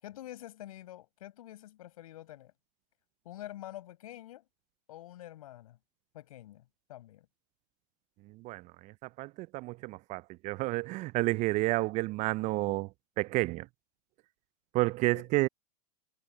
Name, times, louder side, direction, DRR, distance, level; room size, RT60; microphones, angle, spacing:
voice 1, 0.0-2.5 3.2-4.4 4.9-5.8 6.1-7.3 15.1-15.2, left 14 dB, 65° left, 6.3 m, -47 dB
voice 2, 8.3-12.9 13.2-13.7 14.7-15.5, right 21 dB, 35° right, 0.6 m, -30 dB
figure-of-eight pair, 95°, 20 cm